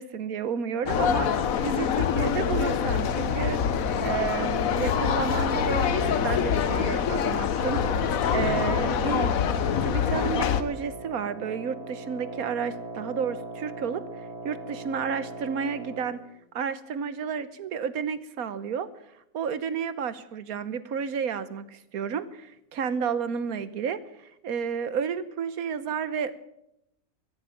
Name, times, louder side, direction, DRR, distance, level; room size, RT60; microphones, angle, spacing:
voice 1, 0.0-3.6 4.0-9.3 9.8-14.0 14.4-16.2 16.5-18.9 19.3-24.0 24.4-26.3, right 7 dB, 80° right, 14 dB, 1.4 m, -31 dB
sound 1, 0.9-10.6, left 7 dB, 70° left, 1.3 m, -25 dB
Wind instrument woodwind instrument, 7.7-16.2, right 2 dB, 45° right, 3.5 m, -40 dB
16.0 x 14.0 x 5.9 m, 0.81 s
omnidirectional pair, 1.5 m